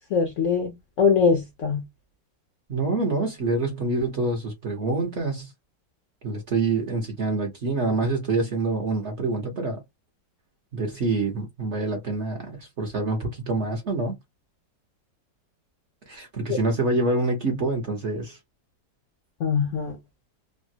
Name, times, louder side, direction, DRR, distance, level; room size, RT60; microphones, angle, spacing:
voice 1, 0.1-1.8 16.5-16.6 19.4-20.0, left 6 dB, 65° left, 0.7 m, -22 dB
voice 2, 2.7-5.5 6.2-9.8 10.7-14.2 16.1-18.4, right 3 dB, 50° right, 0.9 m, -26 dB
3.3 x 2.1 x 2.7 m
omnidirectional pair, 2.0 m